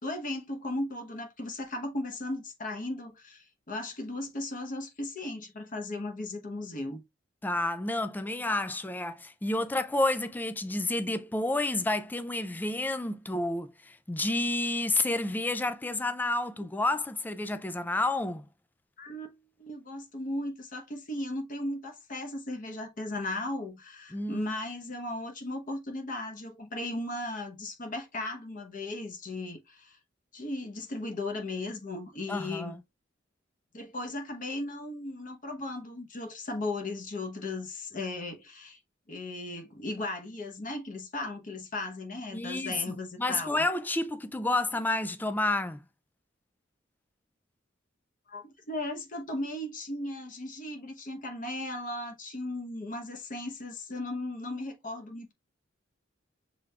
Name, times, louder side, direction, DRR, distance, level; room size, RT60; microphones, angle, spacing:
voice 1, 0.0-7.0 19.0-30.0 30.3-32.8 33.7-38.8 39.1-43.7 48.3-55.3, left 2 dB, 45° left, 1.0 m, -36 dB
voice 2, 7.4-18.4 24.1-24.5 32.3-32.8 42.3-45.8, left 2 dB, 10° left, 0.3 m, -30 dB
6.1 x 3.3 x 2.4 m
head